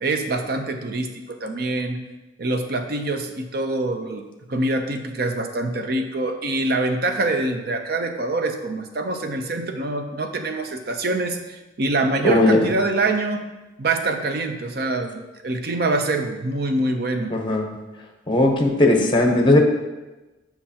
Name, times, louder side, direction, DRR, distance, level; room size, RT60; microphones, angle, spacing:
voice 1, 0.0-2.0 2.4-4.2 4.5-13.4 13.8-17.3, right 2 dB, 55° right, 6 dB, 0.6 m, -25 dB
voice 2, 12.2-12.6 17.3-17.7 18.3-19.6, left 2 dB, 25° left, 3 dB, 0.8 m, -17 dB
7.5 x 5.8 x 2.9 m, 1.1 s
head